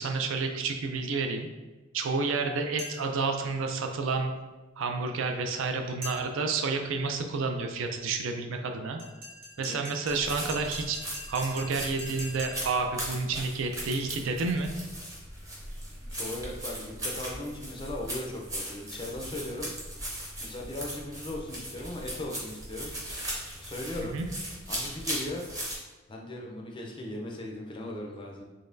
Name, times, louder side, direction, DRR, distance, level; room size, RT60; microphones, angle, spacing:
voice 1, 0.0-1.5 1.9-4.3 4.8-9.0 9.6-11.0 11.3-14.7 24.1-24.3, right 4 dB, 65° right, 4 dB, 0.4 m, -30 dB
sound 1, 2.8-3.2 6.0-6.5 9.0-12.8, left 1 dB, 40° right, 1.0 m, -43 dB
voice 2, 9.6-9.9 16.0-19.7 20.4-23.3 23.6-24.2 24.7-25.5 26.1-28.4, left 1 dB, 25° left, 0 dB, 0.4 m, -38 dB
sound 2, 10.1-25.8, right 1 dB, 15° right, 0.7 m, -38 dB
4.0 x 3.1 x 2.6 m, 1.2 s
head